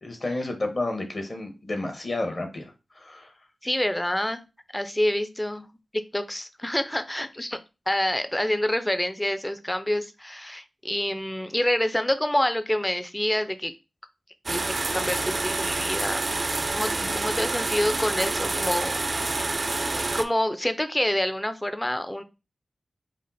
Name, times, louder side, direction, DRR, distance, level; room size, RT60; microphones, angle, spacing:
voice 1, 0.0-2.7 3.0-3.3, left 2 dB, 50° left, 4 dB, 1.3 m, -31 dB
voice 2, 3.6-4.4 4.7-5.6 5.9-7.6 7.9-13.7 14.5-18.9 19.9-22.2, left 1 dB, 15° left, 10 dB, 0.5 m, -27 dB
sound 1, 14.5-20.2, right 2 dB, 45° right, 0.4 m, -27 dB
5.1 x 2.1 x 4.1 m, 0.28 s
wide cardioid pair, 65°, 0 cm